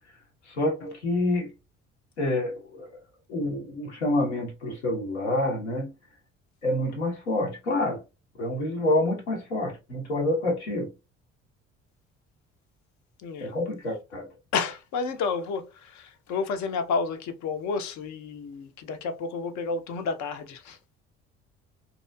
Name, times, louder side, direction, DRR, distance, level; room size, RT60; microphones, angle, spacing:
voice 1, 0.5-1.5 2.2-3.0 3.3-5.9 6.6-8.0 8.4-10.9 13.4-14.3, left 1 dB, 90° left, 0.9 m, -27 dB
voice 2, 13.2-13.6 14.5-20.8, left 5 dB, 55° left, 0.6 m, -31 dB
2.7 x 2.3 x 2.2 m
hypercardioid pair, 55°, 33 cm